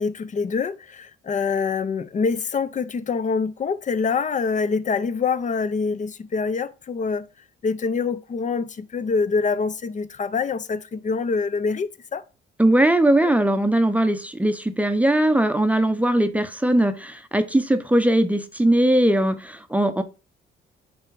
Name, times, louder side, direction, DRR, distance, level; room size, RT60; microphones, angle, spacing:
voice 1, 0.0-7.3 7.6-12.2, left 5 dB, 40° left, 0.6 m, -25 dB
voice 2, 12.6-20.0, right 1 dB, 5° right, 0.6 m, -20 dB
8.6 x 3.4 x 4.6 m
cardioid pair, 105°, 20 cm